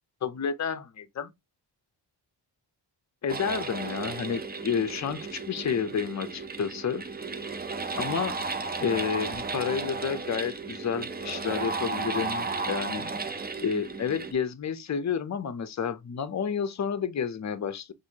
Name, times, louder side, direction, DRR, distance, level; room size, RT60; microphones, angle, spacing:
voice 1, 0.2-1.3 3.2-7.1 8.0-8.4 8.8-17.9, left 6 dB, 40° left, 0.6 m, -30 dB
sound 1, 3.3-14.3, right 4 dB, 25° right, 0.4 m, -34 dB
6.0 x 2.6 x 2.8 m
wide cardioid pair, 120°, 43 cm